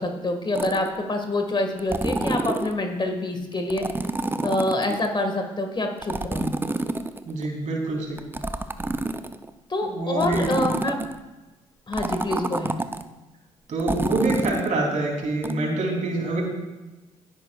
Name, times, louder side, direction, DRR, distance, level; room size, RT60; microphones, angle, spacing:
voice 1, 0.0-3.8 4.4-6.5 9.7-11.0 11.9-12.7, left 2 dB, 30° left, 4 dB, 1.8 m, -26 dB
sound 1, 0.5-1.0 1.8-2.7 3.7-5.1 6.0-7.5 8.2-9.5 10.2-11.2 11.9-13.0 13.8-14.7 15.4-15.5, right 2 dB, 15° right, 0.7 m, -28 dB
voice 2, 7.2-8.2 9.8-10.5 13.7-16.4, right 2 dB, 50° right, -1 dB, 3.4 m, -26 dB
16.5 x 9.0 x 2.4 m, 1.1 s
hypercardioid pair, 45°, 16 cm